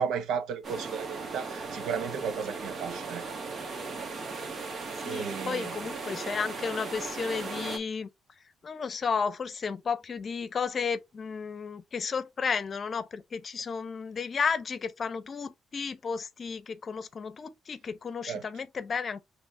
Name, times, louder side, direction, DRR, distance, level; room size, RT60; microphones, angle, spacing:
voice 1, 0.0-3.2 5.1-5.7 18.3-18.4, right 7 dB, 80° right, 0.7 m, -34 dB
sound 1, 0.6-7.8, right 4 dB, 50° right, 1.5 m, -37 dB
voice 2, 5.0-8.1 8.6-19.2, left 5 dB, 45° left, 0.7 m, -33 dB
6.1 x 3.2 x 2.6 m
cardioid pair, 90°, 0 cm